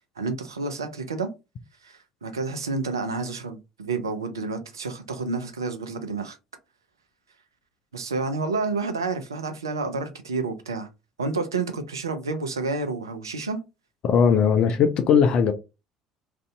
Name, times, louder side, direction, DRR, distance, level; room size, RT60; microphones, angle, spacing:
voice 1, 0.2-1.3 1.8-6.4 7.9-10.9 11.2-13.6, right 3 dB, 80° right, 0.5 m, -29 dB
voice 2, 14.0-15.5, left 7 dB, 50° left, 0.4 m, -19 dB
2.6 x 2.5 x 3.2 m
figure-of-eight pair, 60°, 2 cm